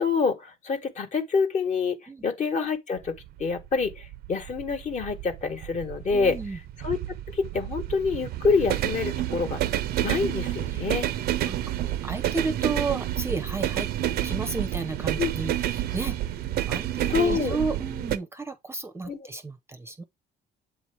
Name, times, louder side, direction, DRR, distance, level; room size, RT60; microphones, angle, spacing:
voice 1, 0.0-2.0 2.2-3.1 3.4-6.4 6.8-7.0 7.3-9.6 10.0-11.1 15.2-15.3 17.1-17.6 19.0-19.2, left 5 dB, 45° left, 1.2 m, -26 dB
sound 1, 3.0-18.2, right 13 dB, 70° right, 0.5 m, -29 dB
voice 2, 6.1-6.6 10.7-10.8 11.4-16.2 16.7-20.0, right 3 dB, 15° right, 0.6 m, -33 dB
7.7 x 2.8 x 4.4 m
cardioid pair, 110°, 17 cm